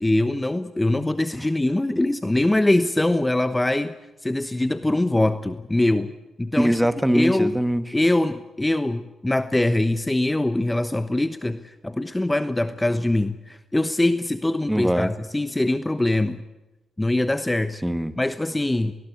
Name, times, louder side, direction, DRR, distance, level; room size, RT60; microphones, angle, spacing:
voice 1, 0.0-3.9 4.2-6.1 6.4-6.7 7.1-7.5 7.9-16.4 17.0-17.8 18.2-18.9, left 1 dB, 15° left, 11 dB, 1.1 m, -23 dB
voice 2, 6.6-7.9 14.7-15.1 17.8-18.1, equal, 5° right, 11 dB, 1.6 m, -22 dB
21.0 x 20.0 x 8.4 m, 1.0 s
hypercardioid pair, 40°, 0 cm